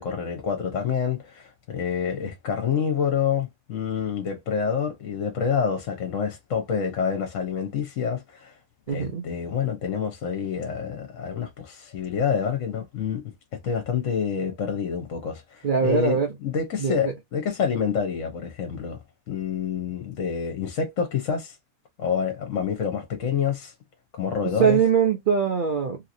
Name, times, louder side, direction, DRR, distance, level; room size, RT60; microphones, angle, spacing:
voice 1, 0.0-8.5 8.9-13.2 13.6-19.0 19.3-21.5 22.0-23.7 24.1-24.8, left 7 dB, 60° left, 1.1 m, -27 dB
voice 2, 8.9-9.2 15.6-16.3 16.8-17.1 24.6-26.0, right 7 dB, 70° right, 0.4 m, -22 dB
2.9 x 2.9 x 2.5 m
omnidirectional pair, 1.7 m